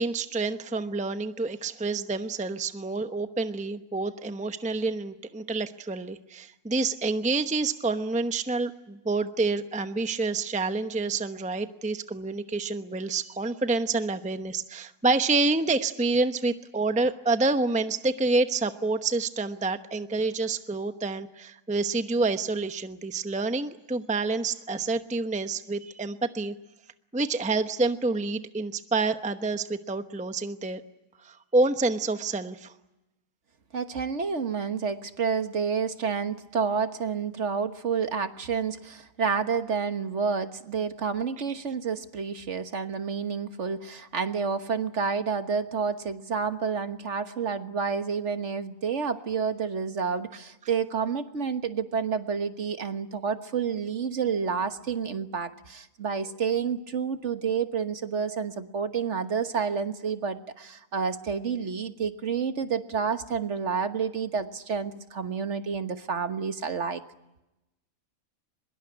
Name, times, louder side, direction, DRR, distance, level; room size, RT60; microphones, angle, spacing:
voice 1, 0.0-26.5 27.1-30.8 31.2-32.7, right 3 dB, 5° right, 9 dB, 0.8 m, -28 dB
voice 2, 33.7-67.0, right 6 dB, 55° right, 9 dB, 1.6 m, -29 dB
23.5 x 22.0 x 9.6 m, 0.95 s
omnidirectional pair, 1.5 m